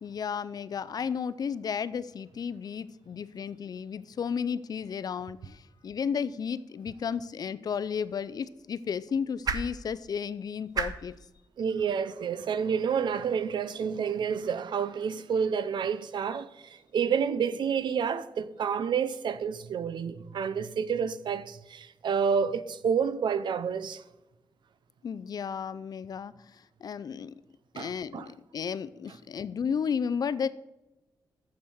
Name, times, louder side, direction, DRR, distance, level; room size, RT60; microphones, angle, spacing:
voice 1, 0.0-11.1 25.0-26.3 26.8-27.3 27.7-30.5, left 6 dB, 55° left, 0.5 m, -33 dB
sound 1, 7.6-13.9, right 5 dB, 55° right, 0.9 m, -40 dB
voice 2, 11.6-24.0 27.8-28.3, right 7 dB, 75° right, 0.6 m, -29 dB
7.3 x 7.2 x 6.3 m
wide cardioid pair, 135°, 8 cm